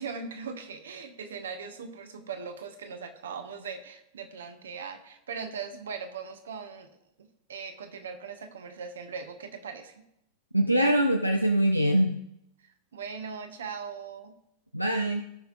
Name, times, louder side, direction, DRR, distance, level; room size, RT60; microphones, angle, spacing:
voice 1, 0.0-6.9 7.2-10.1 12.6-14.3, right 5 dB, 65° right, 8 dB, 1.0 m, -40 dB
voice 2, 10.5-12.2 14.7-15.2, right 1 dB, 90° right, 5 dB, 0.5 m, -23 dB
17.0 x 5.8 x 2.5 m, 0.82 s
figure-of-eight pair, 90°, 0 cm